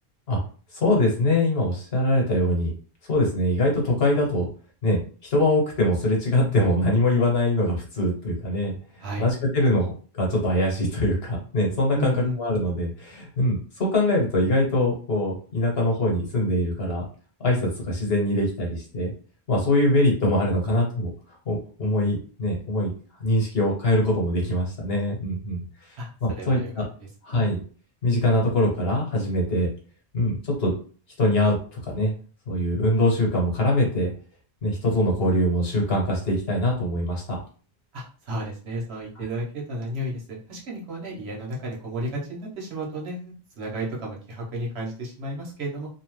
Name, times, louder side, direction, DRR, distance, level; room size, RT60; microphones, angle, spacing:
voice 1, 0.7-2.7 3.1-4.5 4.8-5.0 5.3-8.8 9.2-17.0 17.4-19.1 19.5-21.1 21.4-22.9 23.2-26.0 26.2-26.8 27.2-27.6 28.0-29.7 30.1-30.7 31.2-31.6 31.8-32.1 32.5-34.1 34.6-37.4 39.2-39.3, left 1 dB, 65° left, -1 dB, 1.3 m, -23 dB
voice 2, 11.9-12.4 26.0-26.1 26.3-26.7 27.0-27.4 37.9-45.9, right 1 dB, 75° right, -2 dB, 1.2 m, -32 dB
2.9 x 2.0 x 3.1 m, 0.40 s
omnidirectional pair, 1.1 m